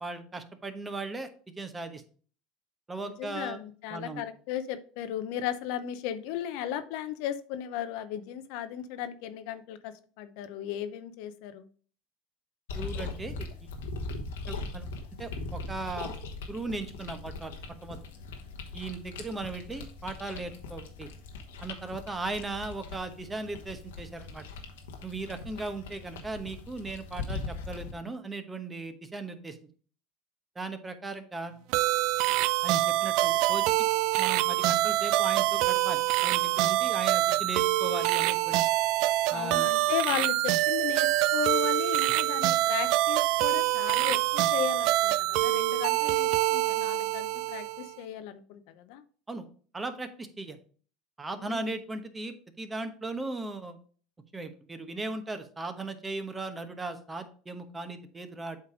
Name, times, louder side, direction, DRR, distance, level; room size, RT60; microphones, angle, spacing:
voice 1, 0.0-2.0 2.9-3.6 3.9-4.2 12.7-13.7 14.5-14.9 15.2-16.1 16.5-17.5 17.8-18.0 18.7-21.1 21.6-24.4 25.0-29.6 30.5-31.6 32.6-33.7 34.2-38.6 39.3-39.7 49.3-49.5 49.7-50.6 51.2-53.8 54.3-58.6, right 3 dB, 15° right, 9 dB, 1.0 m, -37 dB
voice 2, 3.0-11.7 39.3-49.0 51.4-51.7, left 10 dB, 70° left, 10 dB, 0.7 m, -36 dB
sound 1, 12.7-27.9, left 3 dB, 85° left, 1.2 m, -40 dB
sound 2, 31.7-47.9, right 16 dB, 65° right, 0.3 m, -25 dB
8.0 x 3.3 x 4.9 m, 0.43 s
hypercardioid pair, 95°, 0 cm